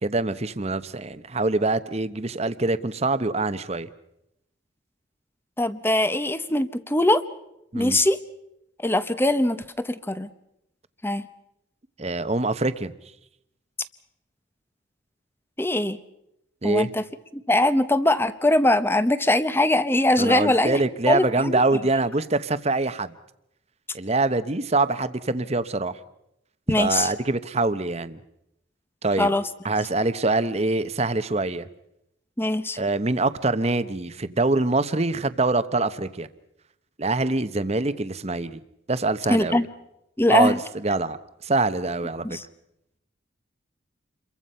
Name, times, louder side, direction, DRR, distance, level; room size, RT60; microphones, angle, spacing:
voice 1, 0.0-3.9 7.7-8.0 12.0-12.9 16.6-16.9 20.2-23.1 23.9-26.0 26.8-28.2 29.0-29.3 29.6-31.7 32.8-36.3 37.0-38.6 38.9-39.6 40.3-41.2 41.4-42.4, right 2 dB, 30° right, 13 dB, 0.9 m, -24 dB
voice 2, 5.6-7.2 7.7-8.2 8.8-10.3 11.0-11.2 15.6-16.0 16.6-17.0 17.5-20.8 21.1-21.5 26.7-27.1 29.2-29.4 32.4-32.8 39.3-39.6 40.2-40.6 42.2-42.4, left 1 dB, 10° left, 13 dB, 0.8 m, -21 dB
28.5 x 23.0 x 5.6 m, 0.83 s
head